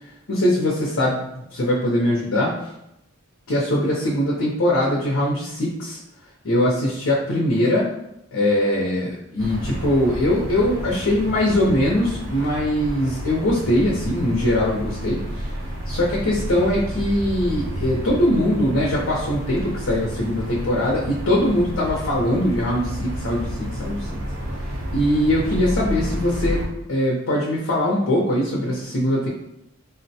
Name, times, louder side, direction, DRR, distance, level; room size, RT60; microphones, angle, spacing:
voice 1, 0.3-2.5 3.5-6.0 6.4-7.9 8.3-15.5 15.9-24.2 24.9-26.6 26.9-29.3, left 1 dB, 70° left, -4 dB, 0.6 m, -21 dB
sound 1, 9.4-26.7, equal, 80° right, 0.7 m, -30 dB
3.8 x 2.1 x 2.7 m, 0.82 s
head